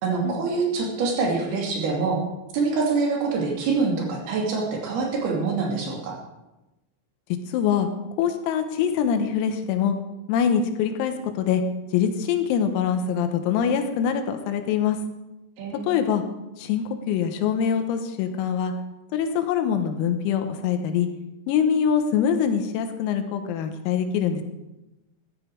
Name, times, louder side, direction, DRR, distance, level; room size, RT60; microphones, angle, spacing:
voice 1, 0.0-2.2 2.5-6.2 15.6-15.9, right 4 dB, 55° right, 0 dB, 4.1 m, -25 dB
voice 2, 7.5-7.9 8.2-10.0 10.3-11.6 11.9-15.0 15.8-16.2 16.6-18.7 19.1-21.1 21.5-24.4, left 8 dB, 85° left, 7 dB, 4.0 m, -24 dB
15.0 x 12.5 x 4.8 m, 0.99 s
omnidirectional pair, 6.0 m